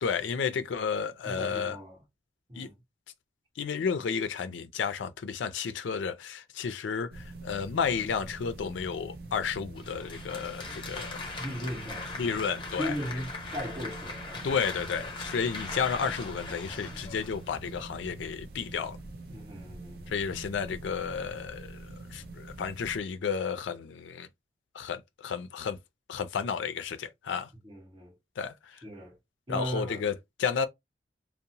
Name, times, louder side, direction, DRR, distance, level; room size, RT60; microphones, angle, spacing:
voice 1, 0.0-1.8 2.5-2.7 3.6-11.2 12.2-12.9 14.4-19.0 20.1-24.3 24.7-25.8 26.1-27.5 28.4-28.8 29.5-30.1 30.4-30.7, left 6 dB, 85° left, 0.4 m, -32 dB
voice 2, 1.2-2.0 2.5-2.7 11.4-12.5 12.7-14.5 19.3-20.1 27.6-28.1 28.8-29.2 29.5-30.1, equal, 30° right, 1.1 m, -37 dB
sound 1, 7.1-23.0, right 2 dB, 55° right, 0.5 m, -45 dB
Applause, 9.8-17.9, left 3 dB, 25° left, 0.7 m, -41 dB
2.8 x 2.0 x 2.6 m
head